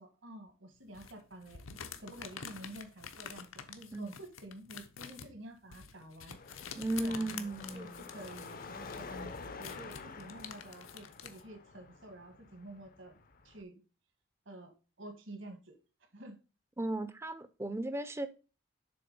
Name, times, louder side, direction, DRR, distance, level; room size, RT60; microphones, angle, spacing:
voice 1, 0.0-1.6 2.0-13.1 13.4-13.8 14.4-14.7 15.0-15.8 16.1-16.4, right 1 dB, 65° right, 1.3 m, -50 dB
sound 1, 0.9-11.4, left 7 dB, 80° left, 0.8 m, -48 dB
Car passing by / Traffic noise roadway noise / Engine, 6.3-13.6, left 4 dB, 45° left, 0.6 m, -49 dB
voice 2, 6.8-8.0 16.8-18.3, right 1 dB, 15° right, 0.5 m, -36 dB
7.0 x 3.7 x 5.1 m
head